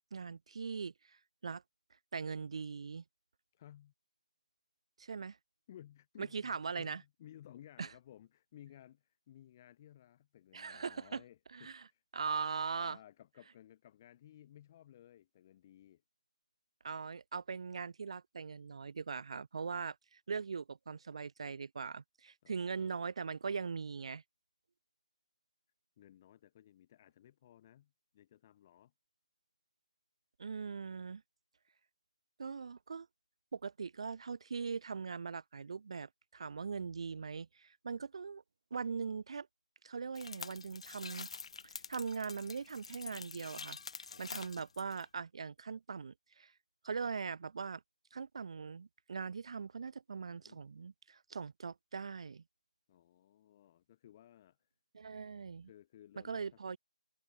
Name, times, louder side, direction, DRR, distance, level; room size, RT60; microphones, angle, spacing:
voice 1, 0.0-1.6 2.1-3.0 5.0-5.4 6.2-7.0 7.8-7.9 10.5-11.2 11.5-11.9 12.1-13.0 16.8-24.2 30.4-31.2 32.4-33.1 33.5-38.4 38.7-39.5 39.8-41.3 41.7-43.8 44.2-46.5 46.8-47.8 48.1-52.4 54.9-55.7 56.2-56.8, right 5 dB, 50° right, 0.3 m, -41 dB
voice 2, 3.5-3.9 5.7-12.0 12.7-16.0 22.4-23.0 26.0-28.9 44.1-44.5 50.3-50.6 52.9-54.7 55.6-56.4, left 11 dB, 25° left, 1.8 m, -58 dB
sound 1, 40.1-45.0, left 5 dB, 55° left, 0.4 m, -47 dB
hypercardioid pair, 170°, 4 cm